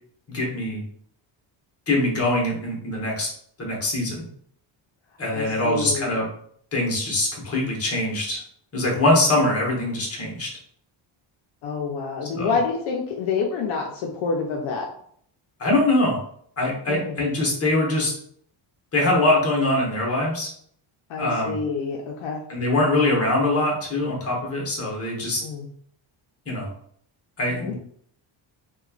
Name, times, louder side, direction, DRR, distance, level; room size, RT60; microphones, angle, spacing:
voice 1, 0.3-0.8 1.9-3.3 3.6-4.3 5.2-6.3 6.7-8.4 8.7-10.5 12.3-12.5 15.6-16.2 16.6-18.1 18.9-20.5 21.2-21.6 22.5-25.4 26.5-26.7 27.4-27.8, left 1 dB, 30° left, -2 dB, 1.1 m, -23 dB
voice 2, 5.3-6.1 11.6-14.9 16.9-17.2 21.1-22.4 25.4-25.7 27.5-27.8, left 5 dB, 70° left, 0 dB, 0.6 m, -28 dB
2.9 x 2.3 x 2.4 m, 0.63 s
cardioid pair, 115°, 50 cm